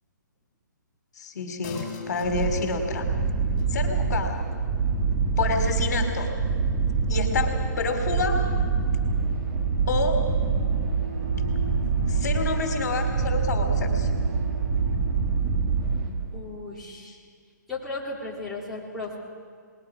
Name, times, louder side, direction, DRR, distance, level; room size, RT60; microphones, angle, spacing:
voice 1, 1.2-3.0 3.7-4.4 5.4-6.3 7.1-8.4 9.9-10.2 12.1-14.1, left 4 dB, 60° left, 5 dB, 2.8 m, -28 dB
sound 1, 1.6-8.7 9.0-9.1, left 6 dB, 30° left, 4.4 m, -46 dB
sound 2, 2.2-16.5, right 5 dB, 25° right, 2.1 m, -25 dB
Bowed string instrument, 7.4-15.9, right 3 dB, 80° right, 6.7 m, -41 dB
voice 2, 16.3-17.2 17.7-19.2, left 3 dB, ahead, -9 dB, 3.4 m, -35 dB
29.0 x 20.5 x 4.9 m, 2.1 s
hypercardioid pair, 155°, 10 cm